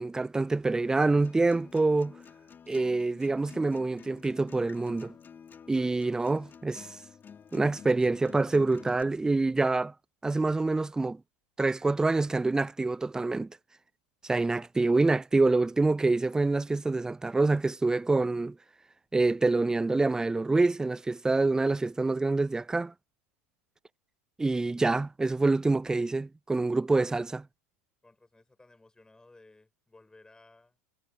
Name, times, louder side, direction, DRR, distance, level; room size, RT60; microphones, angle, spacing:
voice 1, 0.0-2.1 2.7-5.1 5.7-6.9 7.5-9.9 10.2-11.2 11.6-13.5 14.2-18.6 19.1-22.9 24.4-27.4, right 3 dB, 10° right, 0.4 m, -26 dB
Acoustic guitar, 1.0-9.0, left 7 dB, 25° left, 5.0 m, -50 dB
voice 2, 28.0-30.8, left 2 dB, 10° left, 6.4 m, -58 dB
hypercardioid pair, 95°, 7 cm